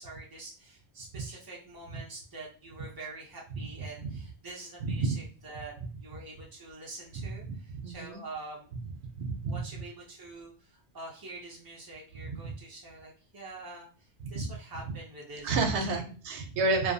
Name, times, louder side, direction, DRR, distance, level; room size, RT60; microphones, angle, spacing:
voice 1, 0.0-8.7 9.5-13.9 14.3-16.0, right 2 dB, 40° right, -3 dB, 0.3 m, -45 dB
voice 2, 4.8-5.2 7.2-8.2 9.2-9.6 12.3-12.5 14.4-14.6 15.4-16.9, right 3 dB, 80° right, 5 dB, 0.9 m, -31 dB
2.7 x 2.2 x 2.5 m, 0.38 s
omnidirectional pair, 1.1 m